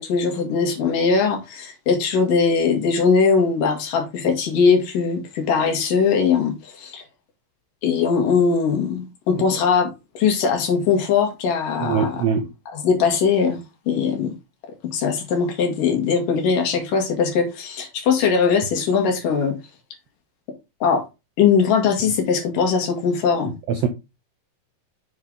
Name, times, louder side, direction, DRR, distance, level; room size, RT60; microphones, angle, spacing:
voice 1, 0.0-7.0 7.8-9.9 10.1-12.2 12.7-13.6 13.9-14.3 14.9-19.6 20.8-21.1 21.4-23.5, left 5 dB, 75° left, 3.6 m, -20 dB
voice 2, 11.8-12.5 23.7-23.9, right 6 dB, 75° right, 1.5 m, -22 dB
7.1 x 6.2 x 3.9 m
omnidirectional pair, 3.9 m